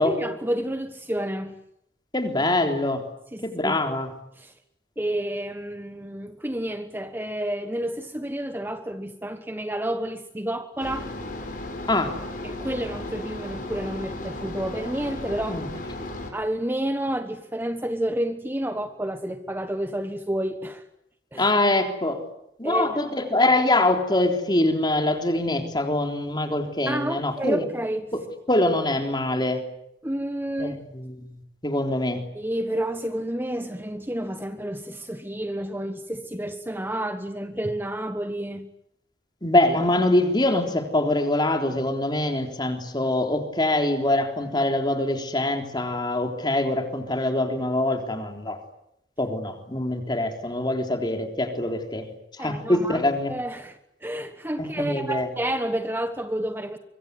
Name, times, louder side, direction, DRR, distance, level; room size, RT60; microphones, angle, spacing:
voice 1, 0.0-1.5 3.3-3.8 4.4-4.5 5.0-11.1 12.4-15.6 16.3-20.8 21.3-21.5 22.6-23.0 26.9-28.1 30.0-30.8 32.3-38.7 52.4-53.0 53.3-56.8, right 1 dB, 10° right, 1.2 m, -30 dB
voice 2, 2.1-3.0 3.4-4.1 11.9-12.2 15.5-15.7 21.4-22.2 22.6-27.6 28.1-28.2 28.5-29.6 30.6-31.1 31.6-32.2 39.4-48.6 49.2-52.1 52.3-53.3 54.6-55.3, left 1 dB, 25° left, 3.7 m, -24 dB
sound 1, 10.8-16.3, left 1 dB, 50° left, 6.9 m, -35 dB
25.0 x 23.5 x 9.6 m
head